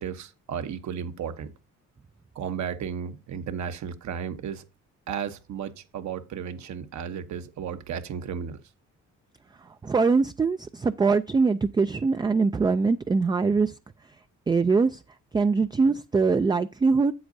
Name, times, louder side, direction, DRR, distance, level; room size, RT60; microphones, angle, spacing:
voice 1, 0.0-1.5 2.3-4.6 5.1-8.6, right 7 dB, 70° right, 1.0 m, -34 dB
voice 2, 9.8-13.7 14.5-15.0 15.3-17.1, right 4 dB, 15° right, 0.3 m, -22 dB
8.0 x 7.9 x 2.6 m
cardioid pair, 90°, 30 cm